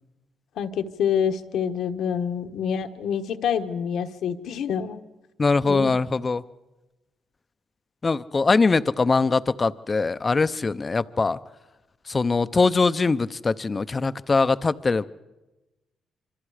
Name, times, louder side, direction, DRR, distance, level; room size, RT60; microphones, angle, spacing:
voice 1, 0.6-5.0 5.6-5.9, left 8 dB, 75° left, 7 dB, 1.2 m, -27 dB
voice 2, 5.4-6.4 8.0-11.4 12.0-15.0, left 4 dB, 30° left, 14 dB, 0.6 m, -22 dB
26.0 x 25.0 x 5.0 m, 1.1 s
cardioid pair, 90°, 0 cm